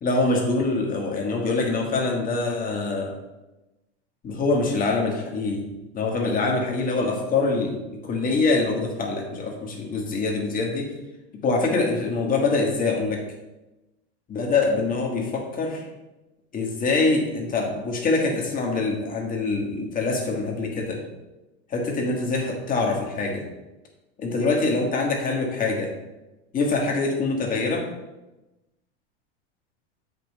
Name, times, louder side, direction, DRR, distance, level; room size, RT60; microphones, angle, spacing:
voice 1, 0.0-3.1 4.2-5.6 5.9-10.9 11.4-13.2 14.3-15.9 16.5-21.0 21.7-23.5 24.2-25.9 26.5-27.9, left 3 dB, 25° left, 1 dB, 1.4 m, -24 dB
7.5 x 5.4 x 3.2 m, 1.0 s
supercardioid pair, 130°, 33 cm